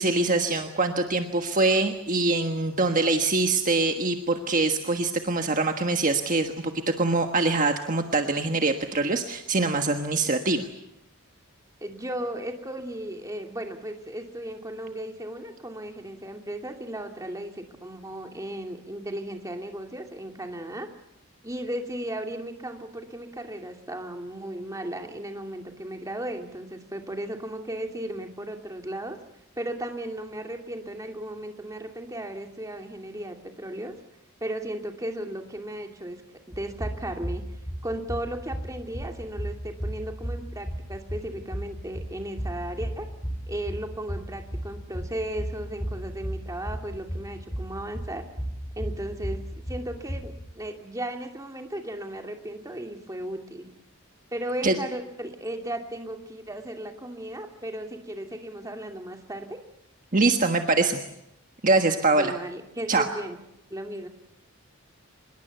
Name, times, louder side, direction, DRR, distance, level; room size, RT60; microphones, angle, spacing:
voice 1, 0.0-10.7 54.6-54.7 60.1-61.0 61.6-62.3 62.9-63.1, right 3 dB, 40° right, 5 dB, 1.4 m, -24 dB
voice 2, 11.8-20.9 21.4-29.2 29.6-33.9 34.4-36.2 36.5-37.4 37.8-43.1 43.5-48.2 48.8-49.4 49.7-53.7 54.3-59.5 62.1-63.4 63.7-64.1, right 1 dB, 15° right, 4 dB, 2.6 m, -35 dB
sound 1, 36.5-50.5, equal, 15° left, 6.4 m, -35 dB
25.0 x 21.5 x 8.1 m, 0.82 s
head